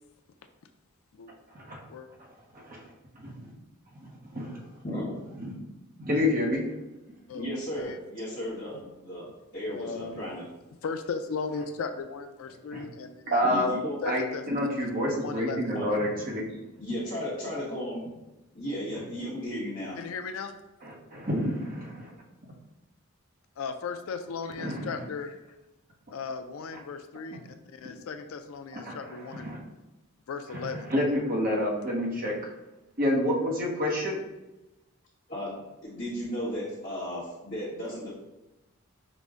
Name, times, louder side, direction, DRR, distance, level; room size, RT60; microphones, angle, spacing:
voice 1, 3.1-3.5 4.3-4.7 6.0-6.6 12.7-12.8 13.3-13.7 14.0-16.5 20.8-22.1 24.6-24.8 28.7-28.9 29.3-29.6 30.9-32.3 33.0-34.2, left 1 dB, 40° right, -2 dB, 0.8 m, -28 dB
voice 2, 4.8-5.3 7.3-9.3 9.5-10.4 13.4-14.0 14.5-14.6 15.7-15.9 16.5-18.0 18.5-20.0 35.3-35.5 35.8-38.1, equal, 40° left, -9 dB, 1.0 m, -35 dB
voice 3, 9.7-10.2 10.8-13.5 14.0-14.9 15.2-15.6 20.0-20.5 23.6-25.4 26.1-29.5 30.3-30.9, left 5 dB, 75° left, 8 dB, 0.4 m, -36 dB
5.1 x 2.1 x 3.5 m, 1.0 s
head